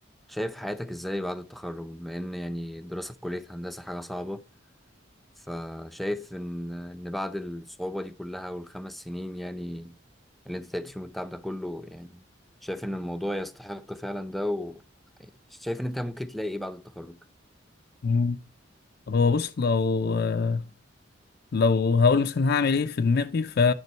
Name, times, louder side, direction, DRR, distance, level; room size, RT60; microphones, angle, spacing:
voice 1, 0.3-4.4 5.4-10.0 10.5-12.2 12.6-14.8 15.2-17.2, left 1 dB, ahead, 0.6 m, -34 dB
voice 2, 18.0-18.4 19.1-20.6 21.5-23.7, left 4 dB, 55° left, 0.5 m, -23 dB
9.6 x 5.4 x 4.4 m
head